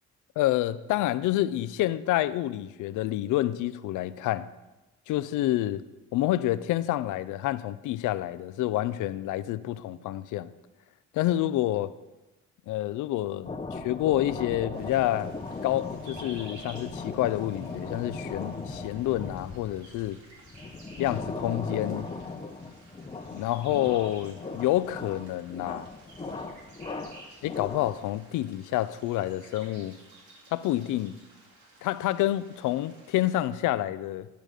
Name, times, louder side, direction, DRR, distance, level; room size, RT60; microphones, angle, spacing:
voice 1, 0.4-4.5 5.1-5.8 6.1-10.5 11.1-11.9 12.7-15.3 15.6-20.2 21.0-22.1 23.3-25.9 27.4-30.0 30.5-31.2 31.8-34.3, left 14 dB, 85° left, 0.5 m, -28 dB
sound 1, 13.5-28.2, left 3 dB, 20° left, 0.8 m, -38 dB
sound 2, 14.7-33.4, right 1 dB, 70° right, 2.5 m, -53 dB
11.0 x 5.1 x 6.5 m
cardioid pair, 90°, 30 cm